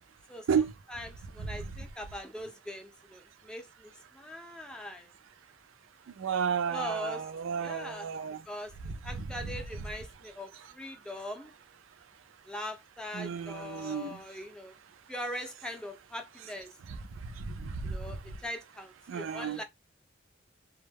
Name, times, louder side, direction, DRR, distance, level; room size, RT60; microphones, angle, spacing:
voice 1, 0.3-0.6 0.9-5.1 6.7-7.2 7.6-8.1 8.5-8.7 9.0-11.5 12.5-14.7 15.1-16.7 17.8-19.6, left 1 dB, 5° left, 0.4 m, -41 dB
voice 2, 6.2-8.4 8.8-9.6 13.1-14.2 16.9-17.0 17.4-18.0 19.1-19.6, right 6 dB, 90° right, 0.4 m, -32 dB
2.2 x 2.0 x 3.3 m
head